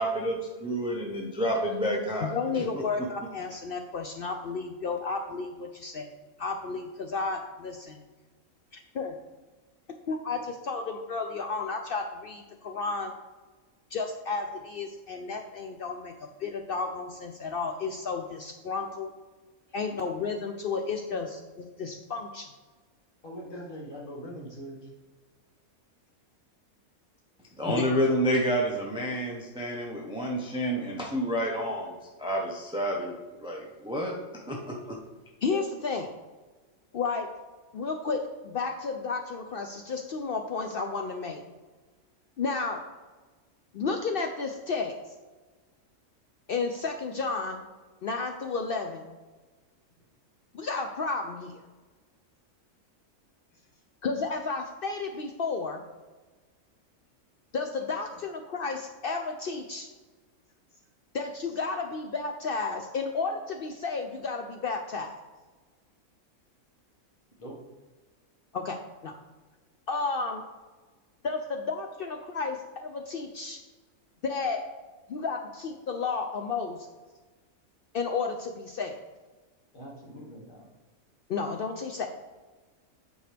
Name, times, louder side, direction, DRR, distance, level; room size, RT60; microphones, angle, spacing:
voice 1, 0.0-2.3 27.6-31.9 32.2-33.1 33.4-34.1 34.5-35.0, equal, 5° right, -1 dB, 0.6 m, -29 dB
voice 2, 2.2-6.1 6.4-8.0 8.7-9.1 10.1-13.1 13.9-16.1 16.4-19.1 19.7-22.5 27.7-27.8 35.4-36.1 36.9-37.3 37.7-41.4 42.4-42.8 43.7-44.9 46.5-47.6 48.0-49.1 50.5-51.6 54.0-55.8 57.5-59.9 61.1-65.2 68.5-68.8 69.0-69.1 69.9-70.4 71.2-73.6 74.2-74.6 75.1-76.9 77.9-79.0 81.3-82.1, left 4 dB, 75° left, 4 dB, 0.5 m, -32 dB
voice 3, 23.2-24.9 67.4-67.5 79.7-80.7, equal, 35° left, -3 dB, 1.7 m, -42 dB
8.8 x 4.6 x 3.3 m, 1.3 s
omnidirectional pair, 1.5 m